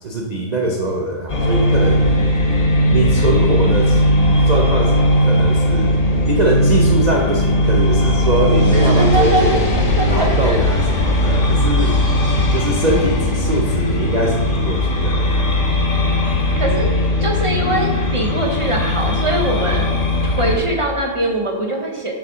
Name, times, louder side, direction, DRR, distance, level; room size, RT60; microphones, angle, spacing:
voice 1, 0.0-2.0 2.9-4.0 4.5-6.0 6.2-9.6 10.1-12.0 12.5-15.6, right 1 dB, 70° right, 0 dB, 0.4 m, -22 dB
sound 1, 1.3-20.6, left 1 dB, 30° left, 0.9 m, -17 dB
voice 2, 8.7-10.6 16.5-16.9 17.2-19.8 20.2-22.2, right 1 dB, 30° right, 1 dB, 0.6 m, -22 dB
6.7 x 5.1 x 6.0 m, 1.5 s
omnidirectional pair, 1.9 m